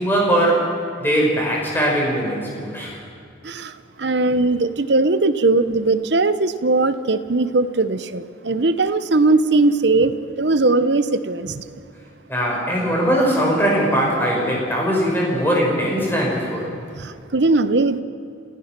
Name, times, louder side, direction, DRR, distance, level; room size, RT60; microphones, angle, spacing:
voice 1, 0.0-3.0 12.3-16.7, equal, 10° left, -3 dB, 5.4 m, -20 dB
voice 2, 3.4-11.7 16.9-18.0, right 3 dB, 60° right, 12 dB, 0.9 m, -19 dB
28.5 x 16.0 x 6.0 m, 2.4 s
head